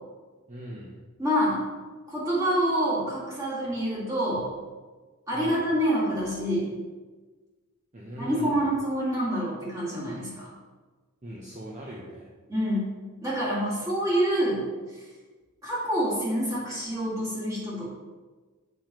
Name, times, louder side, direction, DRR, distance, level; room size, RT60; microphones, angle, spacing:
voice 1, 0.5-1.0 5.3-5.6 7.9-8.7 11.2-12.3, right 1 dB, 35° right, -4 dB, 0.7 m, -40 dB
voice 2, 1.2-1.6 2.1-4.5 5.3-6.7 8.2-10.5 12.5-13.0 13.2-14.7 15.6-17.9, equal, 15° right, -8 dB, 2.0 m, -27 dB
7.0 x 5.7 x 3.0 m, 1.4 s
head